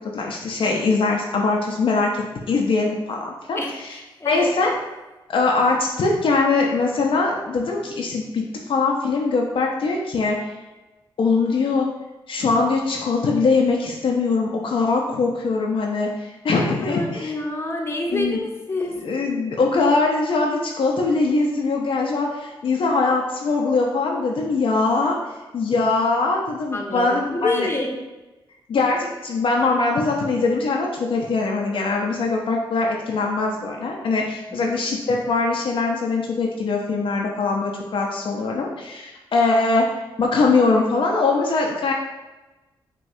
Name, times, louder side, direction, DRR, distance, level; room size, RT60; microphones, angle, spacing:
voice 1, 0.1-3.6 4.2-4.7 5.3-10.4 11.2-11.9 12.3-17.3 18.1-18.4 19.0-25.2 25.5-27.7 28.7-39.9 40.2-41.9, left 3 dB, 65° left, -1 dB, 0.6 m, -22 dB
voice 2, 3.6-4.6 16.5-19.0 26.7-28.0 34.5-34.7, left 2 dB, 25° left, 1 dB, 0.9 m, -28 dB
6.0 x 2.3 x 2.7 m, 1.1 s
cardioid pair, 60°, 10 cm